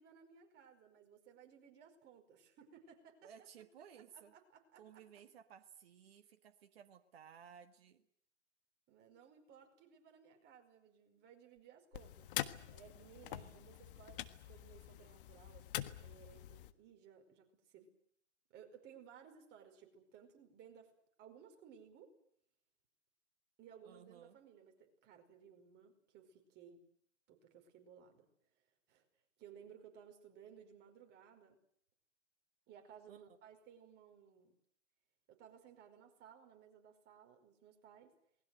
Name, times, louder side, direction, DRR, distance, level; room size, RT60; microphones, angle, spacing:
voice 1, 0.0-3.5 4.0-5.0 8.9-17.9 18.5-20.9 21.2-22.2 23.6-26.8 27.3-28.3 28.9-29.1 29.4-31.6 32.7-34.5 35.3-38.2, right 8 dB, 30° right, 4 dB, 5.2 m, -60 dB
voice 2, 3.2-4.3 4.8-8.1 13.3-13.7 23.8-24.4 33.1-33.4, right 8 dB, 55° right, 7 dB, 1.8 m, -58 dB
sound 1, 11.9-16.7, left 13 dB, 45° left, 1.6 m, -45 dB
28.5 x 21.0 x 7.9 m, 0.68 s
figure-of-eight pair, 120°, 36 cm